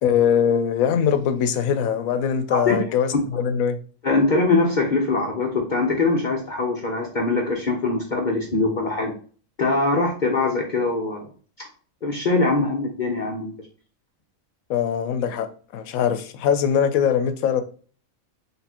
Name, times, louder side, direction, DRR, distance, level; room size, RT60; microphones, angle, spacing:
voice 1, 0.0-3.8 14.7-17.6, left 8 dB, 85° left, 1.0 m, -22 dB
voice 2, 4.0-9.1 9.6-11.3 12.0-13.5, left 3 dB, 45° left, 0.7 m, -22 dB
4.2 x 3.5 x 2.8 m
omnidirectional pair, 1.4 m